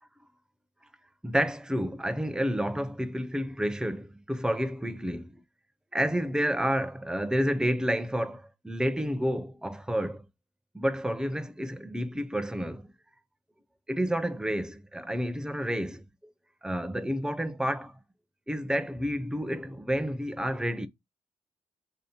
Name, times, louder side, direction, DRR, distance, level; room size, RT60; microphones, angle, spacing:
voice 1, 1.2-5.4 5.9-10.2 10.7-12.9 13.9-16.0 16.6-17.9 18.5-20.9, equal, 5° right, 0.6 m, -30 dB
3.1 x 2.8 x 4.2 m
supercardioid pair, 45°, 15 cm